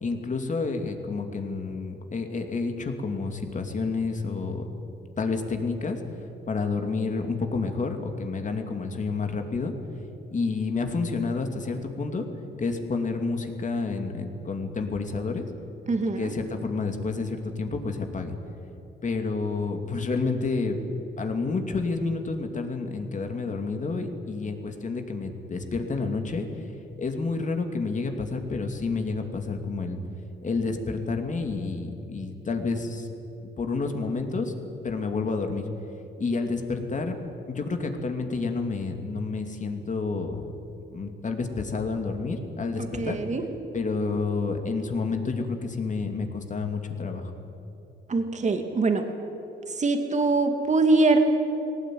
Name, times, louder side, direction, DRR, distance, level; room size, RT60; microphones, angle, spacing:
voice 1, 0.0-4.6 5.2-6.0 6.5-9.7 10.3-12.2 12.6-15.4 16.0-18.3 19.0-20.8 21.2-26.5 27.0-30.0 30.4-33.1 33.4-34.5 34.8-35.6 36.2-37.1 37.5-40.5 40.9-43.2 43.7-47.3, left 4 dB, 40° left, 5 dB, 2.7 m, -29 dB
voice 2, 15.9-16.3 42.8-43.4 48.1-49.0 49.8-51.2, right 3 dB, 35° right, 5 dB, 2.5 m, -23 dB
19.5 x 18.0 x 9.4 m, 2.9 s
cardioid pair, 90°, 20 cm